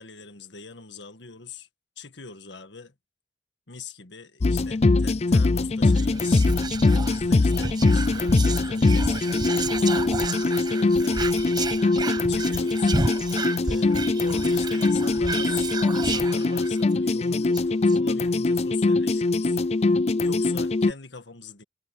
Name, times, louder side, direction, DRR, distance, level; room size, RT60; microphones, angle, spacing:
voice 1, 0.0-1.7 2.0-2.9 3.7-6.5 6.9-10.1 10.6-11.4 12.3-13.0 13.6-19.6 20.2-21.6, left 5 dB, 70° left, 1.8 m, -42 dB
sound 1, 4.4-20.9, left 3 dB, 35° left, 0.4 m, -22 dB
Whispering, 5.9-16.9 17.2-17.3 17.5-18.0, right 3 dB, 25° right, 1.0 m, -32 dB
head